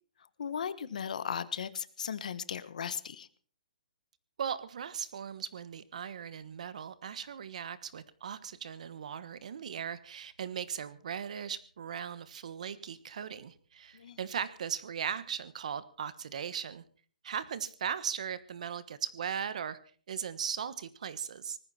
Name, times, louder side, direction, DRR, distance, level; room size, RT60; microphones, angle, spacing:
voice 1, 0.4-3.3 14.0-14.2, left 7 dB, 60° left, 16 dB, 1.2 m, -36 dB
voice 2, 4.4-16.8 17.2-19.8 20.1-21.6, right 8 dB, 55° right, 16 dB, 1.3 m, -38 dB
19.5 x 14.5 x 4.3 m, 0.42 s
hypercardioid pair, 170°, 4 cm